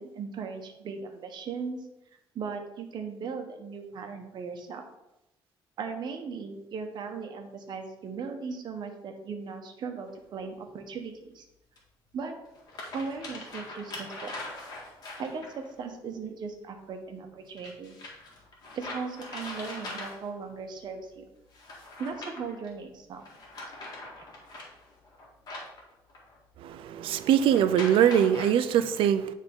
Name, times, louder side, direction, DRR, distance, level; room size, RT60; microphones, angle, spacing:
voice 1, 0.0-1.8 2.3-4.8 5.8-11.4 12.1-12.4 12.9-14.3 15.2-18.0 18.7-21.2 22.0-23.2, right 5 dB, 55° right, 4 dB, 1.1 m, -38 dB
sound 1, 10.1-10.2 11.8-11.9 12.5-15.7 17.6-20.5 21.5-22.7 23.2-26.4 27.4-28.5, left 2 dB, 45° left, 2.0 m, -42 dB
voice 2, 26.6-29.3, right 9 dB, 70° right, 11 dB, 0.5 m, -23 dB
9.7 x 3.7 x 3.7 m, 0.92 s
cardioid pair, 125°, 9 cm